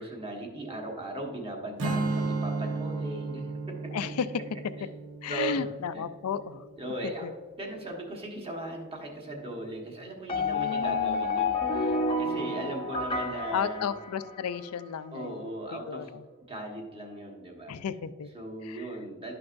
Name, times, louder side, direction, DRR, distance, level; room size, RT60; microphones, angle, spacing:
voice 1, 0.0-4.1 5.3-5.6 5.9-6.0 6.8-7.3 7.6-13.9 15.1-16.1 16.5-17.7 18.3-19.3, right 2 dB, 25° right, 0 dB, 1.3 m, -38 dB
Strum, 1.8-7.1, right 3 dB, 70° right, 1.0 m, -34 dB
voice 2, 3.9-4.3 5.2-6.6 7.2-7.3 10.3-11.3 12.2-12.8 13.5-16.2 17.7-18.3 18.6-18.9, left 7 dB, 75° left, 13 dB, 0.4 m, -34 dB
sound 1, 10.3-14.6, left 3 dB, 25° left, 0.6 m, -30 dB
11.5 x 5.9 x 2.6 m, 1.5 s
head